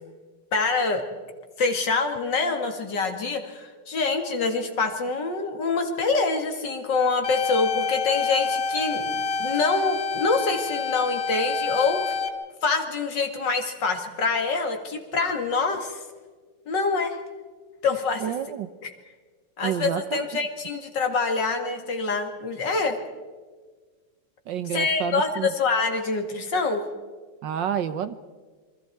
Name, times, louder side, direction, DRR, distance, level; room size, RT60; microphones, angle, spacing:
voice 1, 0.5-1.0 1.6-12.2 12.6-16.0 16.7-17.2 17.8-18.2 18.8-18.9 19.6-23.0 24.7-26.8, left 4 dB, 55° left, 5 dB, 2.8 m, -25 dB
sound 1, 7.2-12.3, left 5 dB, 75° left, 2.4 m, -28 dB
voice 2, 18.2-18.7 19.6-20.4 24.5-25.5 27.4-28.1, right 9 dB, 65° right, 12 dB, 1.4 m, -29 dB
27.0 x 24.5 x 4.6 m, 1.4 s
omnidirectional pair, 2.4 m